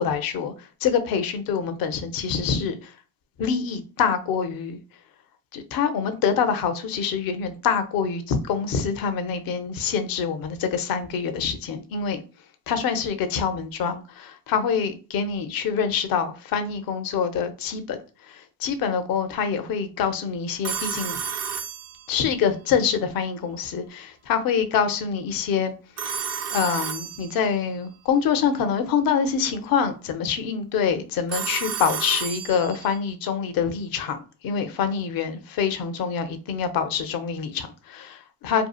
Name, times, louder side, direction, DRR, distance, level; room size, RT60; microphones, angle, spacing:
voice 1, 0.0-2.9 3.4-4.8 5.5-12.2 12.7-21.2 22.1-25.7 26.0-38.7, left 6 dB, 45° left, 0.6 m, -25 dB
Telephone, 20.6-22.4 26.0-27.7 31.3-33.0, right 7 dB, 35° right, 0.5 m, -31 dB
2.8 x 2.3 x 2.4 m
hypercardioid pair, 70°, 49 cm